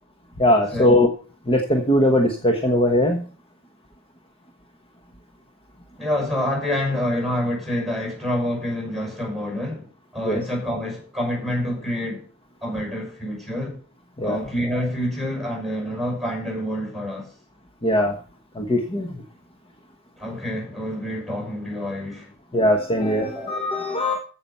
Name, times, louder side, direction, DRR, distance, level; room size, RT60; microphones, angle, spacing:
voice 1, 0.4-1.1 1.5-3.2 10.2-10.4 14.2-14.4 17.8-18.2 18.5-19.1 22.5-24.2, left 1 dB, 25° left, 1.2 m, -20 dB
voice 2, 6.0-9.9 10.1-12.2 12.6-13.8 14.2-17.3 20.2-22.3 23.3-23.5, left 1 dB, ahead, 6.1 m, -27 dB
15.0 x 5.9 x 5.5 m
head